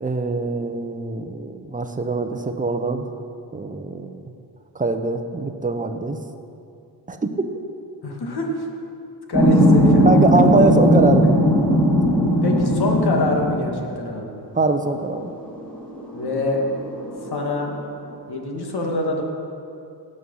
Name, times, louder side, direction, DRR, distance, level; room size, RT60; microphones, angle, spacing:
voice 1, 0.0-3.1 3.5-4.2 4.7-6.2 7.1-7.5 10.0-11.3 14.5-15.3, right 3 dB, 20° right, 6 dB, 0.9 m, -22 dB
voice 2, 8.0-8.7 9.3-10.1 10.4-10.7 12.4-14.3 16.1-16.6 17.3-17.7 18.3-19.2, left 2 dB, 60° left, 1 dB, 2.1 m, -25 dB
sound 1, 9.3-13.8 15.1-15.2 15.6-17.7, equal, 5° left, 2.8 m, -18 dB
17.5 x 6.5 x 5.6 m, 2.6 s
cardioid pair, 85°, 44 cm